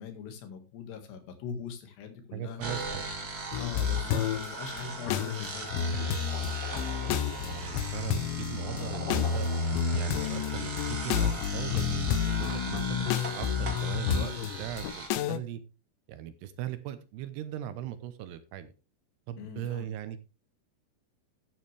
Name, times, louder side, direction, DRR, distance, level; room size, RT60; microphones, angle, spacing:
voice 1, 0.0-2.6 3.6-6.2 19.4-19.9, left 6 dB, 75° left, 6 dB, 3.9 m, -42 dB
voice 2, 2.3-3.2 7.0-9.5 9.9-15.6 16.1-18.7 19.3-20.2, right 11 dB, 75° right, 12 dB, 2.8 m, -39 dB
sound 1, 2.6-15.1, right 3 dB, 30° right, 2.0 m, -39 dB
sound 2, 3.5-4.5 4.8-15.4, left 8 dB, 90° left, 3.2 m, -30 dB
sound 3, 5.8-10.4, left 1 dB, 30° left, 5.8 m, -45 dB
12.5 x 9.4 x 3.3 m, 0.31 s
omnidirectional pair, 5.1 m